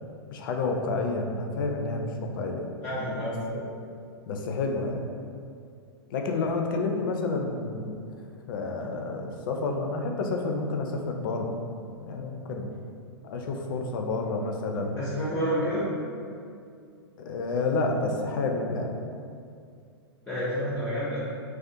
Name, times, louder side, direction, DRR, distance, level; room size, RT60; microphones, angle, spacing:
voice 1, 0.3-2.7 3.1-3.6 4.3-5.0 6.1-8.1 8.5-11.5 12.0-12.7 13.2-15.0 17.2-19.0, left 3 dB, 55° left, 3 dB, 0.4 m, -29 dB
voice 2, 2.8-3.5 15.0-15.8 20.3-21.3, equal, 5° left, -12 dB, 0.6 m, -29 dB
2.3 x 2.1 x 2.7 m, 2.3 s
figure-of-eight pair, 105°, 14 cm